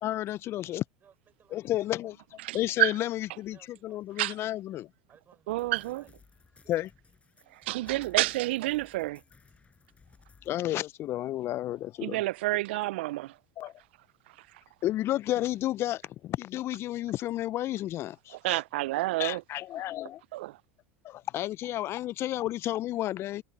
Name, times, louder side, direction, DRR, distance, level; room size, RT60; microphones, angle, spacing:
voice 1, 0.0-0.8 1.5-3.6 3.8-4.9 6.7-6.9 10.5-12.2 13.6-13.7 14.8-18.6 19.2-20.2 21.0-23.4, left 14 dB, 45° left, 0.4 m, -32 dB
voice 2, 1.0-1.9 2.7-3.0 3.5-4.3 5.1-6.1 6.6-6.7 23.2-23.4, right 8 dB, 30° right, 6.4 m, -61 dB
voice 3, 2.4-2.9 4.2-4.3 5.5-6.0 7.7-9.2 12.0-13.3 18.4-19.4 20.3-20.6, right 18 dB, 75° right, 0.4 m, -29 dB
sound 1, 5.5-10.5, left 5 dB, 20° left, 5.0 m, -59 dB
hypercardioid pair, 90°, 6 cm